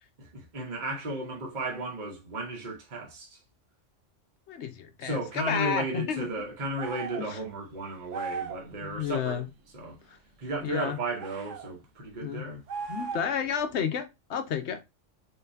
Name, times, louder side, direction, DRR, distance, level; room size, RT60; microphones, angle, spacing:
voice 1, 0.2-3.4 5.0-9.4 9.7-10.0 10.4-12.6, right 2 dB, 40° right, 1.3 m, -34 dB
voice 2, 4.5-6.3 7.2-7.4 8.8-9.5 10.6-11.0 12.2-12.4 12.9-14.8, left 7 dB, 70° left, 1.0 m, -31 dB
sound 1, 6.8-7.3 8.1-8.7 11.2-11.7 12.7-13.5, right 5 dB, 80° right, 1.1 m, -37 dB
3.9 x 3.7 x 2.7 m
omnidirectional pair, 1.3 m